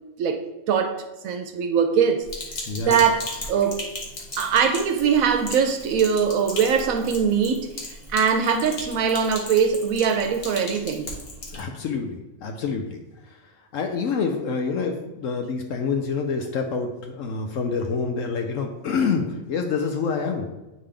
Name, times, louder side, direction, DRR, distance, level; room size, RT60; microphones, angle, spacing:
voice 1, 0.2-2.3 2.9-3.8 4.4-11.1, right 7 dB, 75° right, 1.0 m, -22 dB
Sink (filling or washing), 2.3-11.6, left 2 dB, 45° left, 1.5 m, -37 dB
voice 2, 2.7-3.0 11.5-13.4 13.7-20.5, left 5 dB, 70° left, 1.0 m, -27 dB
8.5 x 3.7 x 3.4 m
omnidirectional pair, 1.5 m